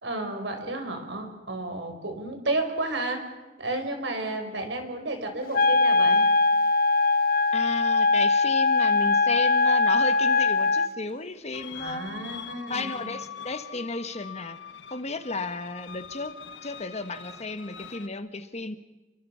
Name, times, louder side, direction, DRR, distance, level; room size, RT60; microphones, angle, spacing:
voice 1, 0.0-3.2 3.6-6.3 11.7-13.1, right 2 dB, 75° right, 5 dB, 5.0 m, -32 dB
Wind instrument woodwind instrument, 5.5-10.9, left 3 dB, 55° left, 0.8 m, -21 dB
voice 2, 7.5-12.2 12.7-14.6 14.9-16.3 16.6-18.7, left 3 dB, 40° left, 10 dB, 1.5 m, -34 dB
sound 1, 11.5-18.1, left 7 dB, 75° left, 1.2 m, -42 dB
29.5 x 23.5 x 5.8 m, 1.1 s
head